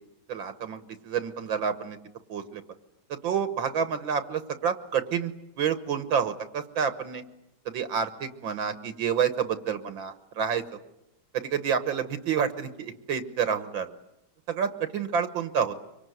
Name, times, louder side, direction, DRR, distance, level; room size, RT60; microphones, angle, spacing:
voice 1, 0.3-2.0 2.3-2.6 3.1-5.3 5.6-7.2 7.7-10.6 11.3-13.9 14.5-15.7, right 7 dB, 75° right, 10 dB, 1.9 m, -29 dB
24.5 x 24.5 x 9.4 m, 0.88 s
omnidirectional pair, 2.2 m